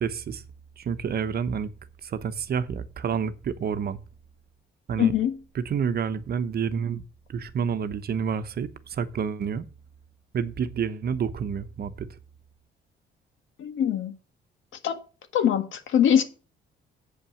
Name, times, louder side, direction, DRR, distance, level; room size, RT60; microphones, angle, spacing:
voice 1, 0.0-0.4 0.8-1.7 2.0-4.0 4.9-5.1 5.5-9.7 10.3-12.2, right 7 dB, 50° right, 0.9 m, -29 dB
voice 2, 5.0-5.4 13.6-14.1 14.8-15.0 15.3-16.2, left 9 dB, 75° left, 1.7 m, -22 dB
8.2 x 5.6 x 7.0 m
cardioid pair, 90°, 20 cm